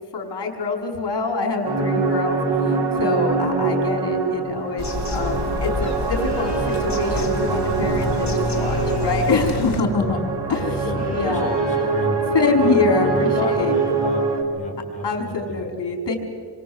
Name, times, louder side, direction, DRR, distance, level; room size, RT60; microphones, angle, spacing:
voice 1, 0.1-2.4 3.0-10.2 10.5-10.7 11.1-11.5 12.3-13.7 15.0-16.2, left 3 dB, 65° left, 3 dB, 4.9 m, -24 dB
sound 1, 1.6-14.4, right 4 dB, 80° right, 3.7 m, -24 dB
Bird vocalization bird call bird song, 4.8-9.8, left 3 dB, 40° left, 3.1 m, -28 dB
sound 2, 6.1-7.0 8.4-9.4 10.8-12.0 13.0-14.1, left 2 dB, 20° right, 7.7 m, -38 dB
voice 2, 9.9-10.2 10.5-15.6, left 2 dB, 15° left, -1 dB, 6.0 m, -30 dB
28.0 x 24.5 x 8.0 m, 2.3 s
wide cardioid pair, 135°, 42 cm